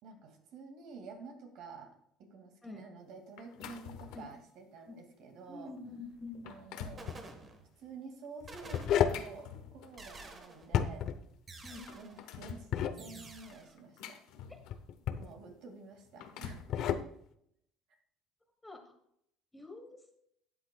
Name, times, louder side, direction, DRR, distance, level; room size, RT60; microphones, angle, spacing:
voice 1, 0.0-1.9 2.2-5.8 6.4-7.2 7.8-11.1 11.9-12.7 12.9-14.2 15.2-16.6 16.9-17.0, right 4 dB, 65° right, 4 dB, 2.2 m, -50 dB
sound 1, 3.4-4.4 5.0-5.1 5.8-5.9 6.3-7.1 8.8-10.1 11.2-11.3 11.6-12.6 13.5-14.9 15.9-16.7, left 8 dB, 75° left, 1.0 m, -48 dB
voice 2, 5.5-6.5 11.6-11.8 18.6-18.8 19.5-20.0, left 3 dB, 10° left, 5 dB, 1.1 m, -46 dB
sound 2, 6.0-6.4 7.0-7.9 8.5-9.4 10.0-10.8 11.5-12.3 13.0-13.7, right 3 dB, 25° right, 1.3 m, -51 dB
sound 3, 6.9-7.2 8.4-9.3 10.6-11.2 12.5-13.0 14.7-15.3 16.5-17.1, left 9 dB, 55° left, 0.7 m, -31 dB
12.5 x 8.4 x 2.3 m, 0.72 s
cardioid pair, 130°, 0 cm